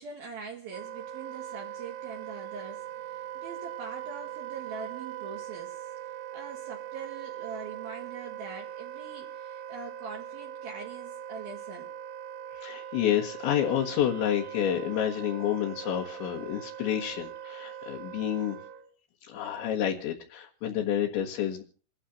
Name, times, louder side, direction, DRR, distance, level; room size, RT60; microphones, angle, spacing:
voice 1, 0.0-5.9 6.3-11.9, right 5 dB, 60° right, 3.2 m, -43 dB
Wind instrument woodwind instrument, 0.7-18.9, right 10 dB, 75° right, 3.5 m, -41 dB
voice 2, 12.5-18.6 19.3-21.6, left 10 dB, 70° left, 3.6 m, -29 dB
30.0 x 13.0 x 2.8 m
omnidirectional pair, 5.9 m